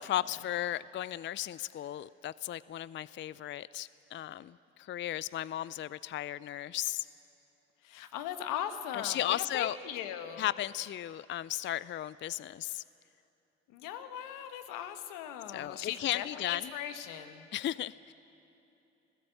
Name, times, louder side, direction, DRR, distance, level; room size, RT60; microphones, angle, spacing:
voice 1, 0.0-7.1 8.9-9.8 10.4-12.8 15.5-16.6 17.5-18.1, left 13 dB, 35° left, 19 dB, 0.4 m, -35 dB
voice 2, 7.8-10.5 13.7-17.5, left 10 dB, 80° left, 9 dB, 1.3 m, -39 dB
26.0 x 16.5 x 7.8 m, 2.9 s
hypercardioid pair, 45°, 32 cm